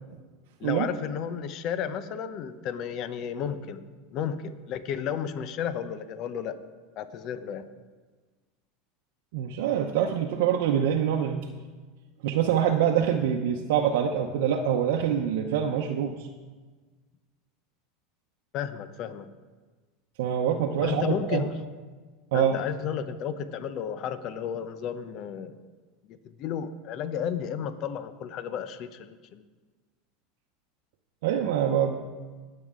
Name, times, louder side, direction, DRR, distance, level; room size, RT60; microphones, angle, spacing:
voice 1, 0.6-3.8 4.1-6.6 7.0-7.7 18.5-19.3 20.8-21.5 22.3-25.6 26.1-29.4, left 8 dB, 50° left, 12 dB, 0.8 m, -33 dB
voice 2, 9.3-11.5 12.2-16.3 20.2-21.4 22.3-22.6 31.2-32.1, right 9 dB, 70° right, 1 dB, 0.8 m, -25 dB
19.5 x 7.7 x 3.7 m, 1.4 s
hypercardioid pair, 95°, 0 cm